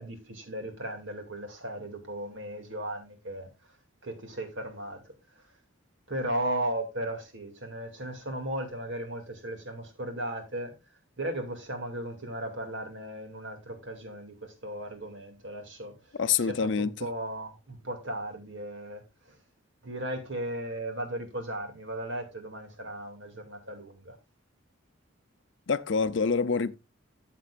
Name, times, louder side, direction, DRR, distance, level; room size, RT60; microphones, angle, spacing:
voice 1, 0.0-3.5 4.0-5.0 6.1-10.7 11.2-15.9 16.5-19.0 19.3-19.4 19.8-24.2, right 1 dB, 65° right, 2.4 m, -36 dB
voice 2, 16.1-16.9 25.7-26.8, left 5 dB, 60° left, 0.6 m, -26 dB
13.0 x 7.5 x 2.5 m
head